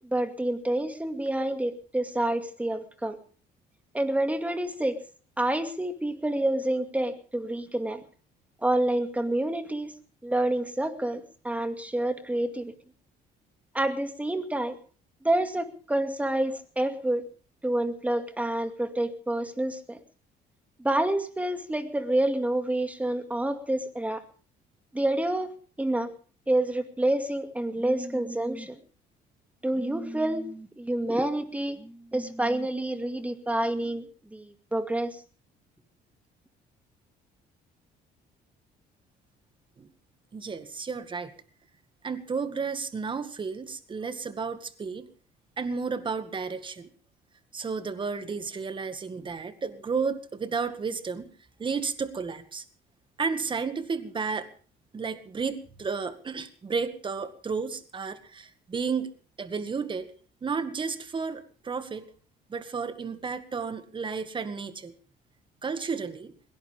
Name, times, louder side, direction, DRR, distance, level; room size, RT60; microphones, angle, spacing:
voice 1, 0.0-3.2 3.9-5.0 5.4-8.0 8.6-9.9 10.2-12.7 13.7-14.8 15.2-17.2 17.6-20.0 20.8-24.2 24.9-25.5 25.8-26.1 26.5-28.8 29.6-35.2, right 1 dB, 10° right, 8 dB, 2.3 m, -28 dB
voice 2, 40.3-41.3 42.0-45.1 45.6-46.9 47.5-51.3 51.6-52.6 53.2-54.5 54.9-59.1 59.4-60.1 60.4-62.1 62.5-64.9 65.6-66.3, right 5 dB, 30° right, 11 dB, 2.0 m, -32 dB
21.5 x 18.0 x 3.6 m, 0.41 s
cardioid pair, 110°, 17 cm